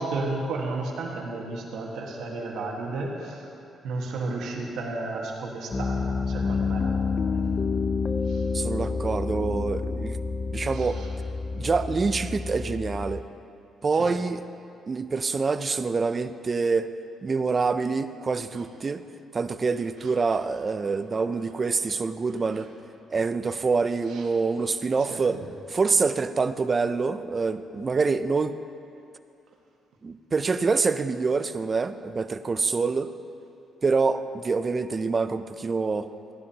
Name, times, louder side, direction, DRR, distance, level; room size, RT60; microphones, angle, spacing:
voice 1, 0.0-3.5 3.8-7.2 8.3-8.4 10.7-11.1 13.9-14.1 24.1-24.2 25.1-25.4, right 3 dB, 80° right, -1 dB, 1.5 m, -33 dB
Piano, 5.7-13.2, left 4 dB, 35° left, 0.5 m, -28 dB
voice 2, 8.5-10.2 10.5-11.0 11.6-13.3 13.8-14.4 14.9-16.9 17.2-19.1 19.3-22.7 23.1-25.4 25.7-28.6 30.0-33.1 33.8-36.1, right 4 dB, 35° right, 11 dB, 0.4 m, -26 dB
15.0 x 10.5 x 2.9 m, 2.6 s
cardioid pair, 90°, 0 cm